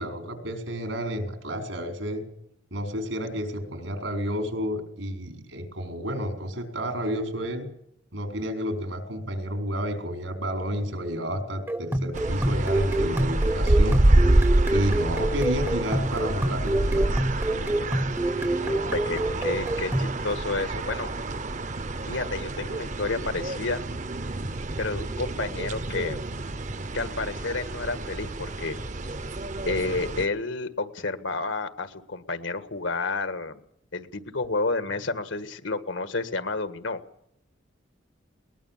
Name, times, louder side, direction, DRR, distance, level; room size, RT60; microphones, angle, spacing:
voice 1, 0.0-2.2 2.7-7.7 8.1-14.0 14.7-17.2, equal, 85° right, 4 dB, 4.7 m, -30 dB
sound 1, 11.7-20.2, right 1 dB, 10° right, 0.7 m, -27 dB
sound 2, 12.1-30.3, right 1 dB, 40° right, 0.8 m, -27 dB
voice 2, 18.6-21.1 22.0-23.8 24.8-26.2 26.9-28.8 29.7-33.6 33.9-37.0, left 3 dB, 80° left, 10 dB, 1.7 m, -30 dB
21.5 x 20.0 x 7.4 m, 0.75 s
head